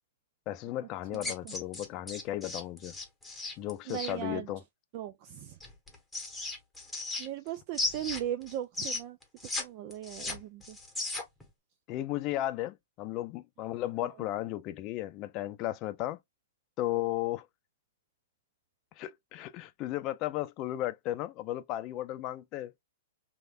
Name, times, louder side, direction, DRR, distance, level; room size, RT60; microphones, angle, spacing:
voice 1, 0.5-2.9 3.6-4.6 11.9-16.2 16.8-17.5 19.0-22.8, left 14 dB, 35° left, 0.5 m, -35 dB
sound 1, 1.1-4.1 5.6-7.5 7.7-9.6 9.9-11.4, left 2 dB, 5° left, 1.2 m, -36 dB
voice 2, 1.1-1.5 3.9-4.5 4.9-5.6 7.2-9.2 9.6-10.8, right 12 dB, 40° right, 0.4 m, -38 dB
3.2 x 2.9 x 2.3 m
hypercardioid pair, 130°, 0 cm